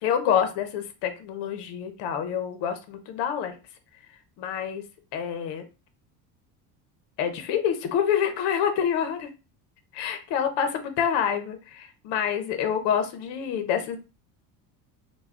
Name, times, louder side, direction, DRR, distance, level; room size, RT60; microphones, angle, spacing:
voice 1, 0.0-3.5 4.4-4.8 5.1-5.6 7.2-9.3 9.9-14.0, left 8 dB, 65° left, 7 dB, 0.7 m, -27 dB
2.2 x 2.2 x 3.5 m, 0.31 s
supercardioid pair, 100°, 45 cm